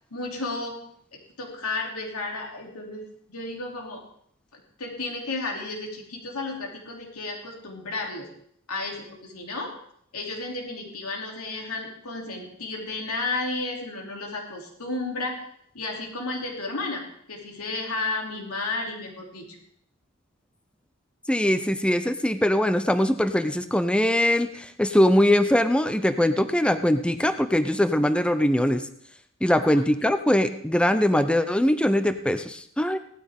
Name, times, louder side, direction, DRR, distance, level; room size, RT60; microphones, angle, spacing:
voice 1, 0.1-0.8 1.1-3.0 3.3-4.0 4.5-8.3 8.7-9.7 10.1-15.4 15.7-17.0 17.3-19.6 29.5-29.8, left 3 dB, 85° left, 0 dB, 3.0 m, -33 dB
voice 2, 21.3-28.9 29.4-33.0, left 1 dB, 5° left, 10 dB, 0.5 m, -22 dB
17.5 x 12.5 x 3.6 m, 0.65 s
head